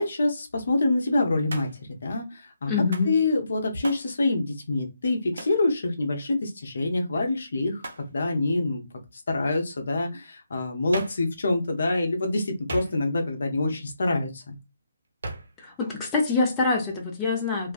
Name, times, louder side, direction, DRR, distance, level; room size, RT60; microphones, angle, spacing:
voice 1, 0.0-1.7 2.0-2.7 3.0-7.8 8.1-8.8 9.3-14.5, left 2 dB, 55° left, 0.6 m, -26 dB
Hands, 1.5-1.9 2.9-3.2 3.8-4.1 5.4-5.6 7.8-8.1 10.9-11.3 12.7-13.3 15.2-15.6, right 2 dB, 60° right, 0.6 m, -38 dB
voice 2, 2.7-3.1 15.6-17.7, left 4 dB, 15° left, 0.6 m, -25 dB
2.4 x 2.2 x 2.3 m
figure-of-eight pair, 145°, 0 cm